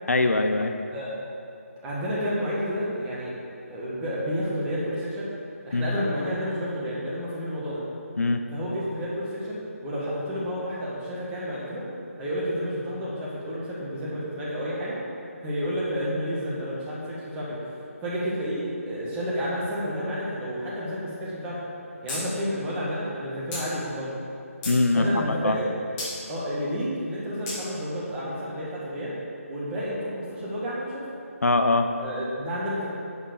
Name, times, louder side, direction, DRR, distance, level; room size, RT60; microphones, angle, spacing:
voice 1, 0.1-0.7 5.7-6.0 8.2-8.4 24.6-25.6 31.4-31.9, left 2 dB, 80° left, 6 dB, 0.7 m, -22 dB
voice 2, 1.8-3.3 3.7-5.3 5.6-7.8 8.5-11.9 12.2-15.0 15.4-17.6 18.0-21.6 22.0-24.2 24.9-25.7 26.3-29.1 29.5-31.1 32.0-32.9, equal, 10° right, -7 dB, 1.7 m, -30 dB
sound 1, 22.1-22.2 22.5-22.6 23.5-23.6 24.3-24.8 26.0-26.1 27.5-27.6, left 2 dB, 15° left, 1.9 m, -33 dB
10.0 x 4.6 x 6.9 m, 2.6 s
figure-of-eight pair, 160°, 8 cm